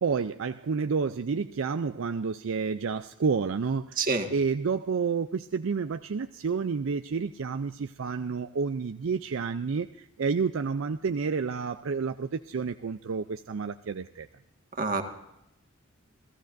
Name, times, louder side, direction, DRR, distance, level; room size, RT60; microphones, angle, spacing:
voice 1, 0.0-4.0 4.3-14.3, right 5 dB, 65° right, 9 dB, 0.4 m, -30 dB
voice 2, 4.0-4.3 14.8-15.0, right 4 dB, 40° right, 5 dB, 1.7 m, -26 dB
30.0 x 14.5 x 2.6 m, 0.84 s
head